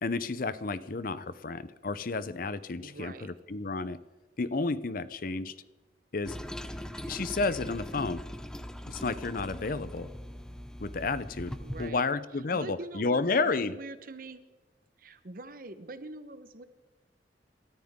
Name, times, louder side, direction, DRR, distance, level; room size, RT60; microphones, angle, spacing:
voice 1, 0.0-4.0 4.4-5.6 6.1-6.4 7.1-8.2 8.9-10.1 10.8-13.7, left 3 dB, 50° left, 15 dB, 0.7 m, -31 dB
voice 2, 2.8-3.3 11.6-12.1 12.5-14.4 15.0-16.6, right 2 dB, 55° right, 11 dB, 1.1 m, -44 dB
Toilet flush, 6.3-11.9, equal, 5° left, 0.7 m, -40 dB
29.0 x 13.5 x 3.7 m, 1.2 s
head